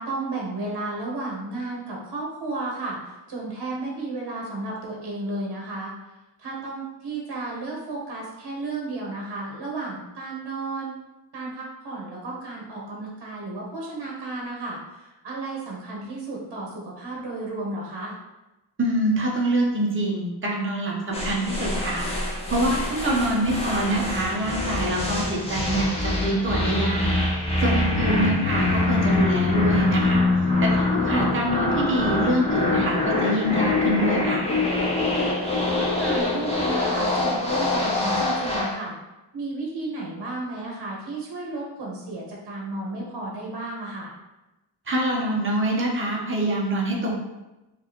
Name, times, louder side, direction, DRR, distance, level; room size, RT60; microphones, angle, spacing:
voice 1, 0.0-5.9 6.4-10.9 11.3-18.1 28.0-28.4 35.7-39.0 39.3-44.1, right 2 dB, 65° right, -2 dB, 1.1 m, -33 dB
voice 2, 18.8-22.0 22.5-27.1 27.6-30.2 30.6-34.5 44.9-47.1, right 1 dB, 30° right, -2 dB, 0.8 m, -25 dB
sound 1, 21.1-38.8, left 2 dB, 15° left, 0.7 m, -24 dB
sound 2, 27.9-31.1, left 6 dB, 85° left, 0.6 m, -31 dB
4.6 x 2.4 x 2.9 m, 1.0 s
wide cardioid pair, 145°, 41 cm